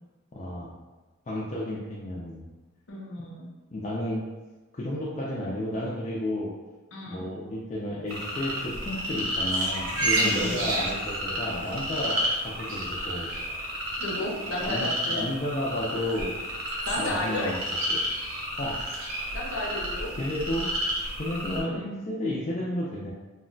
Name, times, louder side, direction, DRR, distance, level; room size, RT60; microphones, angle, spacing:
voice 1, 0.3-0.7 1.3-2.5 3.7-4.2 4.7-6.5 7.1-13.3 14.6-16.3 17.0-17.6 17.9-18.0 18.6-18.8 20.2-23.1, left 1 dB, 35° left, -5 dB, 0.3 m, -32 dB
voice 2, 2.9-3.5 6.9-7.3 10.1-10.7 14.0-15.3 16.9-17.5 19.3-20.1, left 1 dB, 75° left, -2 dB, 0.6 m, -32 dB
sound 1, 8.1-21.6, equal, 90° right, 0.8 m, -30 dB
2.2 x 2.1 x 3.7 m, 1.2 s
head